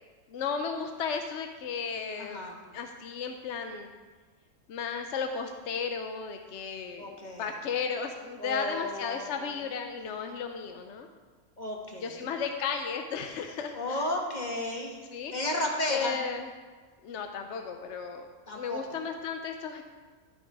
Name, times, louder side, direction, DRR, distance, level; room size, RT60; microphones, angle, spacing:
voice 1, 0.3-2.4 2.7-3.9 4.7-11.1 12.0-14.1 15.1-15.3 15.9-16.5 17.0-18.3 18.6-19.8, left 6 dB, 60° left, 5 dB, 0.8 m, -34 dB
voice 2, 2.2-2.6 7.0-7.5 8.4-9.5 11.6-12.3 13.7-15.0 15.3-16.1 18.5-19.0, left 1 dB, 30° left, 1 dB, 1.3 m, -33 dB
12.5 x 6.4 x 4.7 m, 1.4 s
omnidirectional pair, 1.5 m